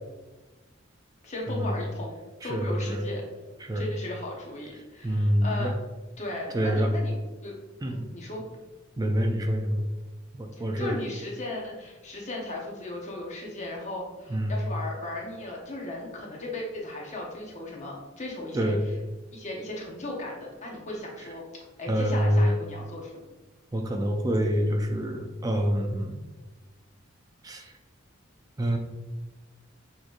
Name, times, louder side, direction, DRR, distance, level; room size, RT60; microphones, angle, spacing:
voice 1, 1.2-2.2 2.4-3.2 3.7-5.7 6.2-7.1 7.4-7.5 7.8-8.4 10.6-18.7 19.3-21.4 21.8-23.2, left 2 dB, 35° left, -1 dB, 1.0 m, -36 dB
voice 2, 2.4-3.0 3.6-3.8 5.0-5.7 6.5-6.9 7.8-8.1 9.0-9.8 10.4-11.0 14.3-14.5 18.5-18.8 21.9-22.5 23.7-26.2 27.4-27.7 28.6-28.8, equal, 20° right, 3 dB, 0.4 m, -26 dB
6.3 x 3.1 x 2.5 m, 1.1 s
head